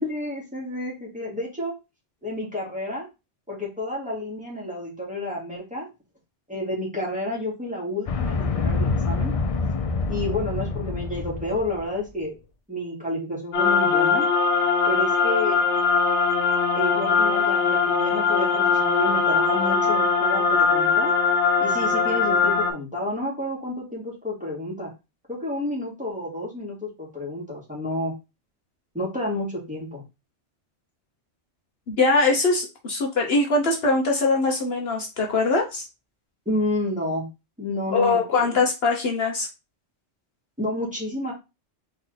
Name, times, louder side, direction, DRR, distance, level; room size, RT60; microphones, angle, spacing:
voice 1, 0.0-1.8 2.2-3.1 3.5-5.9 6.5-9.3 10.1-12.4 12.7-14.3 14.9-15.6 16.7-21.1 21.6-24.9 25.3-28.2 28.9-30.0 36.5-37.3 37.6-38.5 40.6-41.3, left 1 dB, 5° right, -4 dB, 2.1 m, -30 dB
sound 1, 8.1-12.0, left 4 dB, 45° left, 0.4 m, -26 dB
sound 2, 13.5-22.7, left 5 dB, 85° left, 1.2 m, -21 dB
voice 2, 31.9-35.9 37.9-39.5, left 3 dB, 60° left, 2 dB, 1.1 m, -22 dB
4.0 x 3.3 x 3.9 m, 0.25 s
omnidirectional pair, 1.2 m